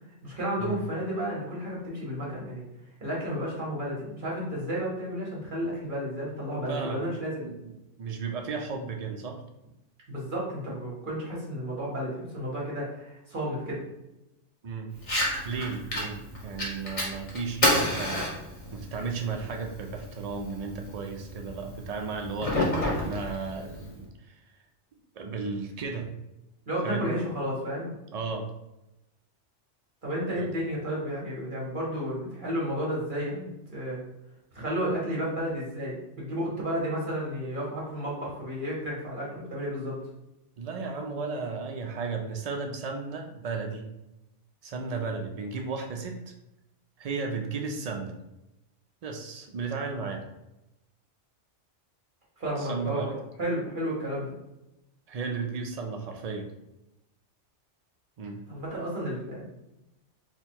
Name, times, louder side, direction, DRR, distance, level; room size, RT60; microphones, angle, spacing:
voice 1, 0.2-2.6 3.0-7.5 10.1-13.8 26.7-27.9 30.0-34.0 34.5-40.0 52.4-53.1 53.4-54.4 58.5-59.5, equal, 45° right, -5 dB, 1.2 m, -32 dB
voice 2, 6.7-7.0 7.4-7.7 8.0-9.4 14.6-14.9 15.4-18.3 18.7-24.4 25.2-26.1 26.8-27.1 28.1-28.5 30.4-30.5 40.6-43.9 44.6-46.3 47.0-48.2 49.0-50.2 52.6-53.2 55.1-56.5 58.2-58.4, right 4 dB, 80° right, 3 dB, 0.3 m, -34 dB
Fire, 15.0-24.0, left 1 dB, 35° left, 0.9 m, -31 dB
3.4 x 2.2 x 4.3 m, 0.92 s
omnidirectional pair, 1.2 m